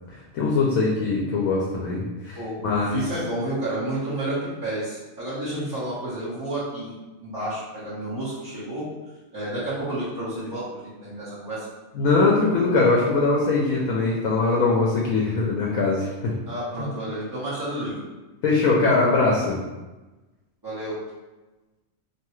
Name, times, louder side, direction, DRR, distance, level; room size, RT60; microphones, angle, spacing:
voice 1, 0.3-2.4 2.6-3.0 11.9-16.3 16.8-16.9 18.4-19.6, left 3 dB, 90° left, -3 dB, 1.0 m, -21 dB
voice 2, 2.9-4.3 4.6-6.9 7.2-8.8 9.3-11.6 16.5-18.0 20.6-20.9, right 1 dB, 20° right, -14 dB, 0.9 m, -30 dB
2.9 x 2.3 x 3.0 m, 1.1 s
omnidirectional pair, 1.4 m